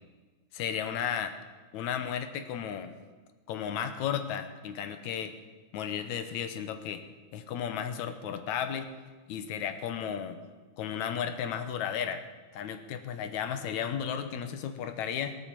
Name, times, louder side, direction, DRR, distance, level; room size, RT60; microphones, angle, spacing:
voice 1, 0.5-1.3 1.7-2.9 3.5-5.3 5.7-7.0 7.3-8.9 9.3-10.4 10.8-12.2 12.5-15.4, left 8 dB, 75° left, 9 dB, 2.3 m, -34 dB
18.0 x 8.4 x 7.5 m, 1.3 s
omnidirectional pair, 3.5 m